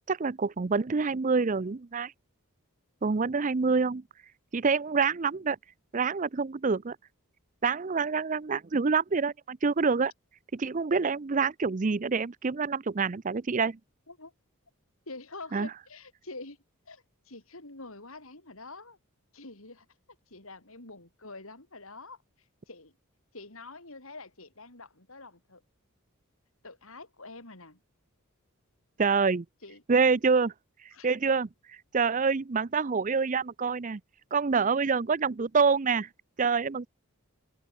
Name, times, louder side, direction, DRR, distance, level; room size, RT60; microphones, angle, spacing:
voice 1, 0.1-2.1 3.0-4.0 4.5-5.6 5.9-7.0 7.6-10.1 10.5-13.8 15.5-15.7 29.0-29.4 29.9-30.5 31.0-34.0 34.3-36.1 36.4-36.9, right 5 dB, 35° right, 0.5 m, -26 dB
voice 2, 15.1-16.6 16.9-19.0 19.3-19.9 20.3-22.2 22.7-22.9 23.3-25.6 26.6-27.8 29.6-29.8 30.9-31.1, left 3 dB, 75° left, 5.4 m, -46 dB
open air
head